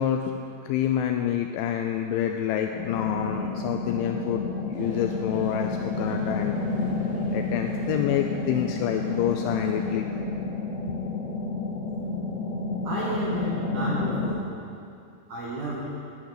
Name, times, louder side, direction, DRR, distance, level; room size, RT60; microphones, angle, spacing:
voice 1, 0.0-6.6 7.3-10.1, left 10 dB, 85° left, 4 dB, 2.7 m, -27 dB
sound 1, 2.7-14.3, left 3 dB, 60° left, 2.3 m, -30 dB
sound 2, 4.7-10.0, right 1 dB, 50° right, 1.3 m, -47 dB
voice 2, 12.8-14.5 15.3-15.9, right 2 dB, 80° right, -5 dB, 1.7 m, -32 dB
9.5 x 8.6 x 9.3 m, 2.5 s
omnidirectional pair, 5.9 m